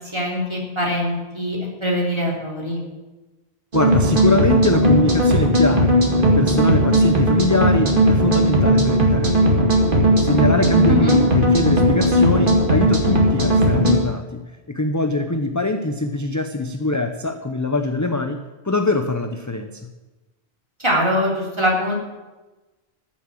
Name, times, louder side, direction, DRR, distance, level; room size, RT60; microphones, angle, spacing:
voice 1, 0.1-2.8 10.9-11.2 20.8-21.9, equal, 25° right, -3 dB, 3.5 m, -22 dB
voice 2, 3.7-14.4 14.7-18.4 18.6-19.7, left 2 dB, 20° left, 6 dB, 0.7 m, -23 dB
sound 1, 3.7-14.0, equal, 55° right, 2.3 m, -17 dB
13.5 x 7.2 x 9.0 m, 1.1 s
omnidirectional pair, 1.1 m